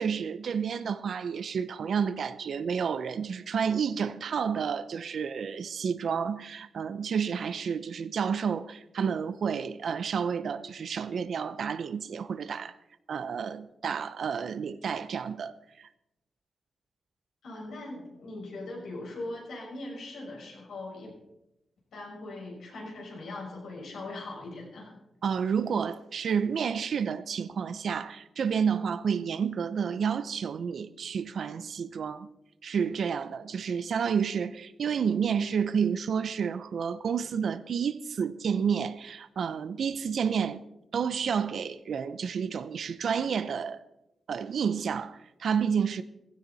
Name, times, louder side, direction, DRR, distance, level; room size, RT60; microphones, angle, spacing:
voice 1, 0.0-12.7 13.1-15.5 25.2-32.3 32.6-40.6 40.9-43.8 44.3-46.0, right 6 dB, 70° right, 0.7 m, -30 dB
voice 2, 17.4-21.1 21.9-24.9, left 2 dB, 90° left, 6.2 m, -40 dB
16.0 x 16.0 x 4.2 m
wide cardioid pair, 120°, 0 cm